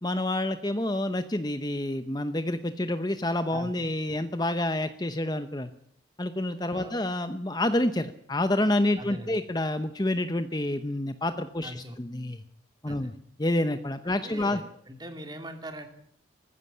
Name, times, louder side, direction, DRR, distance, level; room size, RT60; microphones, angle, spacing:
voice 1, 0.0-5.7 6.2-12.4 12.8-13.1 13.4-14.6, left 1 dB, 20° left, 10 dB, 0.8 m, -28 dB
voice 2, 9.0-9.4 11.6-12.0 12.9-13.1 14.0-15.9, equal, 20° right, 6 dB, 2.9 m, -41 dB
20.0 x 15.0 x 9.8 m, 0.65 s
head